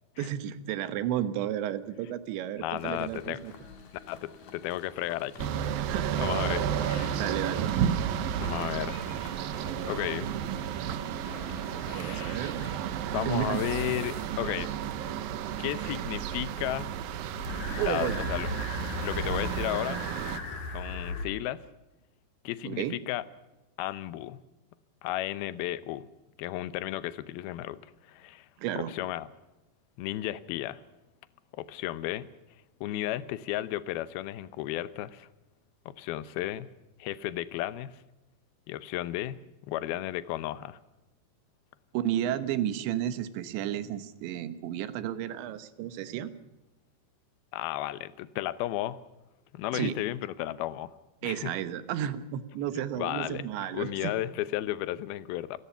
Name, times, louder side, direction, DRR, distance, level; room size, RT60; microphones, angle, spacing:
voice 1, 0.2-3.5 5.9-6.3 7.2-7.7 11.9-12.8 13.2-13.7 17.8-18.3 22.6-23.0 28.6-28.9 41.9-46.3 49.7-49.9 51.2-54.1, right 11 dB, 85° right, 12 dB, 3.5 m, -32 dB
voice 2, 2.6-3.4 4.1-5.5 6.2-7.2 8.4-9.0 9.8-10.3 11.7-12.4 13.1-14.8 15.6-16.9 17.7-18.5 19.0-20.0 20.5-21.6 22.4-23.2 23.8-24.4 25.0-26.1 26.4-28.5 28.9-29.3 30.0-30.8 31.5-32.3 32.8-35.3 35.9-36.7 37.0-38.0 38.7-40.8 47.5-49.0 49.5-50.9 51.2-51.5 53.0-53.4 53.7-55.6, left 14 dB, 75° left, 15 dB, 2.5 m, -34 dB
sound 1, 2.8-14.7 17.4-21.3, left 3 dB, 55° left, 3.8 m, -42 dB
sound 2, 5.4-20.4, right 9 dB, 70° right, 2.4 m, -32 dB
29.5 x 16.5 x 5.7 m, 1.0 s
omnidirectional pair, 5.1 m